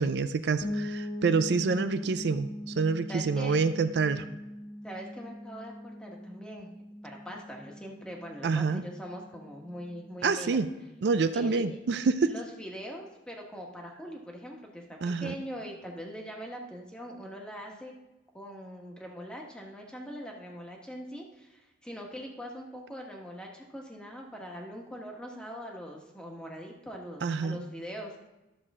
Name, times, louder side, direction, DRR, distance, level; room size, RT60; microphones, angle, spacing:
voice 1, 0.0-4.2 8.4-8.8 10.2-10.7 11.0-12.3 15.0-15.4 27.2-27.6, right 4 dB, 65° right, 11 dB, 0.4 m, -27 dB
sound 1, 0.6-10.3, left 1 dB, 80° left, 2.6 m, -41 dB
voice 2, 3.1-3.6 4.8-10.6 11.3-11.6 12.3-17.9 18.3-28.1, equal, 5° left, 0 dB, 1.3 m, -42 dB
12.0 x 6.7 x 3.6 m, 1.0 s
head